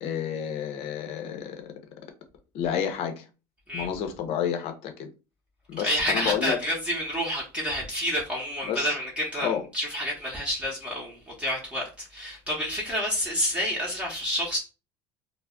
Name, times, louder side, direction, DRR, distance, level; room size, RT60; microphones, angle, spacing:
voice 1, 0.0-1.7 2.5-3.3 3.7-5.1 5.7-6.6 8.7-8.9 9.4-9.6, left 8 dB, 55° left, 0.6 m, -30 dB
voice 2, 5.8-14.6, equal, 10° right, 0.7 m, -29 dB
2.2 x 2.0 x 3.6 m
supercardioid pair, 120°, 12 cm